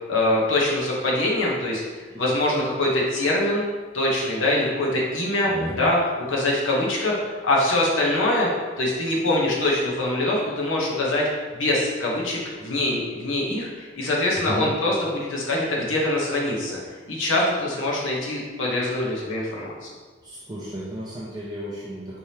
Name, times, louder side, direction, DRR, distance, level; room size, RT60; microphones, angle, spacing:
voice 1, 0.1-3.6 3.9-19.9, left 1 dB, 75° left, -4 dB, 1.0 m, -24 dB
voice 2, 20.2-22.2, equal, 20° right, -7 dB, 0.6 m, -33 dB
4.5 x 3.4 x 2.8 m, 1.4 s
head